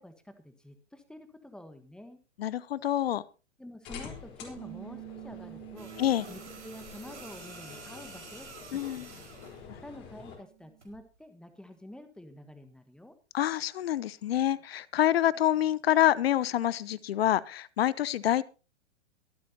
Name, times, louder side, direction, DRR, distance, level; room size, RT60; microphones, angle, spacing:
voice 1, 0.0-2.2 3.6-5.9 6.3-9.1 9.8-13.1, left 1 dB, ahead, 9 dB, 1.5 m, -48 dB
voice 2, 2.4-3.2 6.0-6.3 8.7-9.1 13.3-18.4, left 12 dB, 60° left, 21 dB, 0.9 m, -27 dB
sound 1, 3.9-10.4, left 6 dB, 30° left, 4.2 m, -48 dB
Bass guitar, 4.6-8.9 9.2-10.8, right 31 dB, 40° right, 1.0 m, -50 dB
sound 2, 5.8-9.6 10.8-11.0, right 4 dB, 75° right, 5.1 m, -49 dB
23.0 x 8.4 x 2.8 m, 0.33 s
hypercardioid pair, 120°, 34 cm